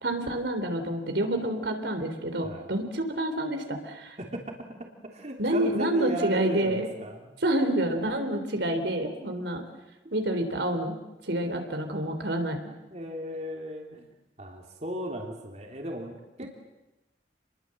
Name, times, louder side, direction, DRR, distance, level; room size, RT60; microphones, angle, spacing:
voice 1, 0.0-4.2 5.4-6.9 7.4-9.6 10.1-11.0 11.2-12.6 16.4-16.5, right 1 dB, 70° right, 5 dB, 3.6 m, -28 dB
voice 2, 2.4-2.7 4.2-7.3 10.0-10.1 12.9-14.1 14.4-16.5, equal, 35° right, 2 dB, 3.2 m, -36 dB
28.5 x 22.0 x 7.8 m, 0.98 s
head